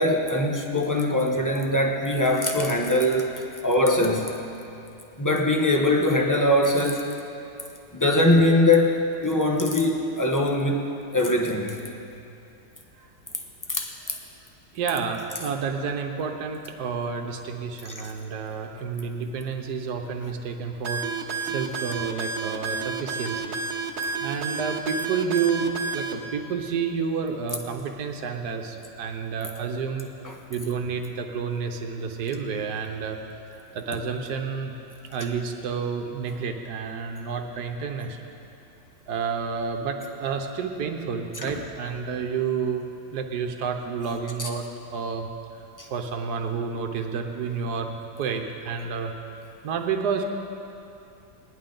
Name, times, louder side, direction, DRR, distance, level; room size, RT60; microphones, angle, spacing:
voice 1, 0.0-3.3 3.6-4.4 5.2-7.0 7.9-10.9 11.1-11.8 13.7-13.9 18.0-18.1 41.4-41.6 44.4-44.5 45.8-45.9, left 1 dB, 15° left, 1 dB, 0.7 m, -22 dB
voice 2, 14.7-23.6 24.2-25.7 25.9-30.1 30.5-33.2 33.7-34.7 35.1-38.2 39.1-42.8 43.1-45.3 45.9-49.1 49.6-50.2, right 6 dB, 75° right, 4 dB, 1.5 m, -30 dB
sound 1, 20.8-26.1, right 4 dB, 50° right, 1.0 m, -30 dB
18.5 x 11.0 x 3.9 m, 2.7 s
omnidirectional pair, 1.8 m